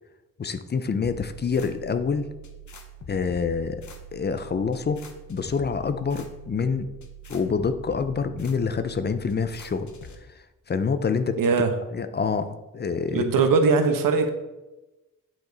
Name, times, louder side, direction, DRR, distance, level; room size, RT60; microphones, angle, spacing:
voice 1, 0.4-2.3 3.1-3.8 4.1-5.0 5.3-6.9 7.3-9.9 10.7-11.4 11.9-13.3, left 5 dB, 30° left, 10 dB, 0.5 m, -26 dB
sound 1, 1.0-10.2, right 2 dB, 60° left, 1.0 m, -44 dB
voice 2, 11.4-11.7 13.1-14.3, right 4 dB, 85° right, 7 dB, 1.0 m, -20 dB
9.0 x 5.2 x 3.9 m, 1.0 s
wide cardioid pair, 120°, 33 cm